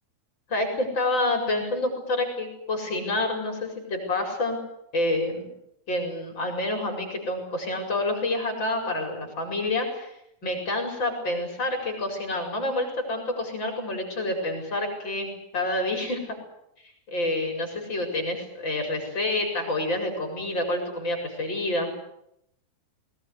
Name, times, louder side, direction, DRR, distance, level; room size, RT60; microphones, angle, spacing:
voice 1, 0.5-4.6 4.9-5.5 5.9-16.3 16.8-21.9, left 2 dB, 30° left, 4 dB, 5.6 m, -28 dB
20.0 x 19.5 x 9.9 m, 0.78 s
omnidirectional pair, 4.1 m